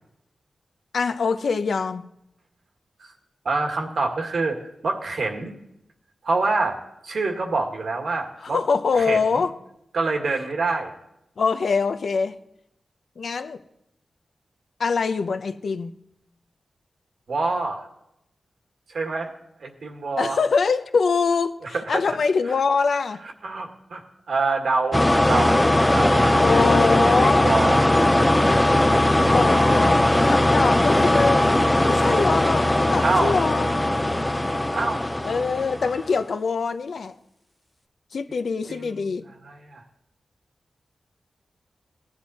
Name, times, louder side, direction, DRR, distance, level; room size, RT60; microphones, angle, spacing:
voice 1, 0.9-2.1 8.4-9.5 11.4-12.4 13.2-13.6 14.8-15.9 20.2-23.2 26.4-27.5 29.3-31.5 31.9-33.7 35.2-37.1 38.1-39.2, left 5 dB, 70° left, 0.7 m, -24 dB
voice 2, 3.5-4.6 4.8-5.5 6.2-6.8 7.0-8.6 9.0-9.4 9.9-10.9 17.3-17.9 18.9-19.3 19.6-20.4 21.7-22.2 23.4-24.0 24.3-26.7 26.9-27.8 29.5-29.6 33.0-33.3 34.7-35.0 38.7-38.9 39.4-39.8, right 3 dB, 70° right, 1.8 m, -26 dB
sound 1, 24.9-36.1, left 1 dB, 10° left, 0.5 m, -19 dB
17.5 x 9.6 x 4.2 m
wide cardioid pair, 110°, 0 cm